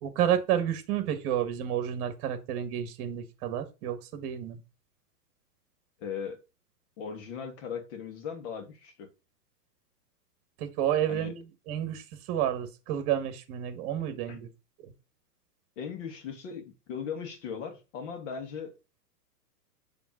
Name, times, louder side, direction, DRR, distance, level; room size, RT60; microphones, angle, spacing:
voice 1, 0.0-4.6 10.6-14.5 14.8-14.9, right 10 dB, 35° right, 1.4 m, -30 dB
voice 2, 6.0-6.4 7.0-9.1 11.1-11.3 14.3-14.4 15.8-18.7, left 7 dB, 50° left, 1.9 m, -38 dB
7.0 x 3.5 x 5.1 m
hypercardioid pair, 140°, 49 cm